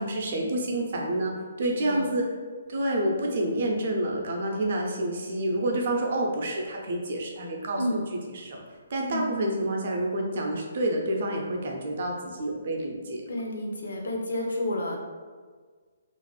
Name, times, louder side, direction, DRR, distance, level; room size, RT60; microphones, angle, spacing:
voice 1, 0.0-1.3 1.6-2.2 2.7-8.0 8.3-8.6 8.9-13.2, right 1 dB, 40° right, 0 dB, 0.4 m, -28 dB
voice 2, 1.7-2.1 7.8-8.0 9.1-9.3 13.3-15.0, left 1 dB, 80° left, 1 dB, 0.5 m, -30 dB
2.4 x 2.2 x 3.1 m, 1.5 s
hypercardioid pair, 180°, 0 cm